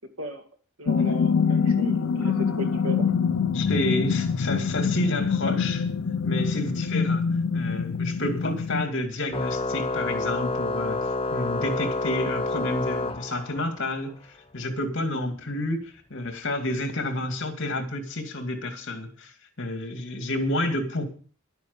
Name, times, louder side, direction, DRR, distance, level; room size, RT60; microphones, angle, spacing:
voice 1, 0.8-3.1, equal, 75° right, 5 dB, 2.4 m, -35 dB
sound 1, 0.9-8.9, left 5 dB, 90° left, 0.6 m, -25 dB
voice 2, 3.5-5.9 6.2-7.2 7.5-11.0 11.3-19.3 19.6-21.0, left 1 dB, 60° left, 6 dB, 2.4 m, -30 dB
Organ, 9.3-13.8, left 3 dB, 25° left, 0.8 m, -28 dB
11.5 x 9.4 x 7.0 m, 0.43 s
head